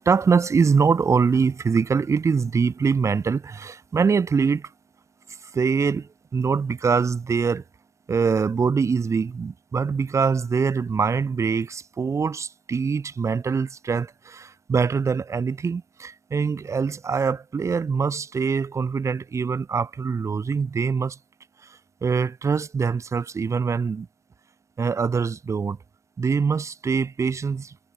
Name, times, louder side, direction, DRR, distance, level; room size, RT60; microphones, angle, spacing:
voice 1, 0.1-4.7 5.5-7.6 8.1-21.2 22.0-24.1 24.8-25.8 26.2-27.7, right 5 dB, 45° right, 1.0 m, -23 dB
wide cardioid pair, 140°, 7 cm